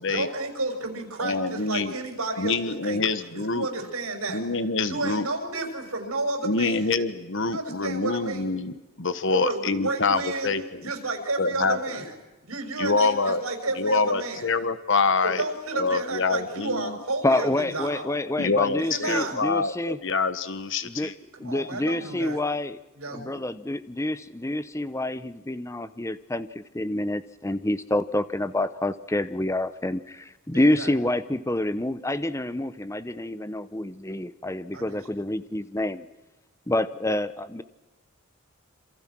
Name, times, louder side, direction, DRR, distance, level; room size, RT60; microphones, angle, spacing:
voice 1, 0.1-4.4 4.9-6.8 7.4-8.5 9.3-10.5 10.8-12.1 12.4-14.4 15.2-18.1 18.8-19.3 21.4-22.4 22.9-23.4 30.5-30.9 34.7-35.0, right 2 dB, 85° right, 3 dB, 6.2 m, -31 dB
voice 2, 1.2-2.0 2.4-3.7 4.3-5.3 6.4-10.9 11.4-11.9 12.8-13.4 13.8-15.4 15.7-16.9 18.4-21.1, left 4 dB, 60° left, 12 dB, 1.3 m, -26 dB
voice 3, 17.2-20.0 20.8-21.1 21.4-22.8 23.1-36.1 36.7-37.6, left 1 dB, 15° left, 13 dB, 0.8 m, -27 dB
27.5 x 27.5 x 6.2 m, 1.1 s
head